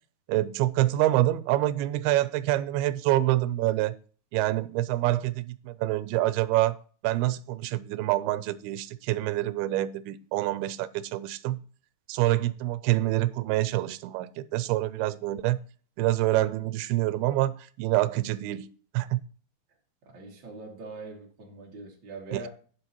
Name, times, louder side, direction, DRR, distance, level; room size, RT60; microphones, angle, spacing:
voice 1, 0.3-4.0 4.3-6.8 7.0-11.6 12.1-15.6 16.0-18.7 18.9-19.2, right 15 dB, 90° right, 2.6 m, -26 dB
voice 2, 20.0-22.5, right 3 dB, 35° right, 2.4 m, -42 dB
15.0 x 5.7 x 3.0 m
omnidirectional pair, 4.4 m